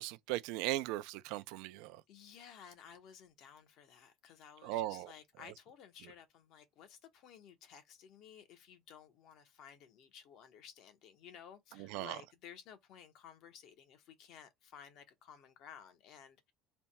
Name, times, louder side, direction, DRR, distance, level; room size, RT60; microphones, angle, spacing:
voice 1, 0.0-2.0 4.6-5.1 11.8-12.2, right 16 dB, 85° right, 0.4 m, -38 dB
voice 2, 2.1-16.5, left 8 dB, 60° left, 0.9 m, -56 dB
3.3 x 2.2 x 4.1 m
cardioid pair, 135°, 0 cm